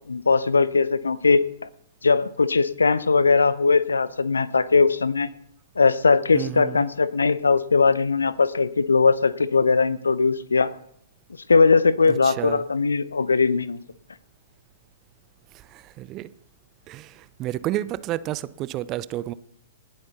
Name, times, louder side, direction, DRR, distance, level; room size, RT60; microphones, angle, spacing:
voice 1, 0.1-1.5 2.0-5.3 5.8-10.7 11.5-13.8, left 4 dB, 75° left, 0.6 m, -20 dB
voice 2, 6.3-6.8 12.2-12.6 15.5-16.3 16.9-19.3, right 14 dB, 30° right, 0.5 m, -31 dB
18.5 x 7.9 x 4.1 m
figure-of-eight pair, 115°, 0 cm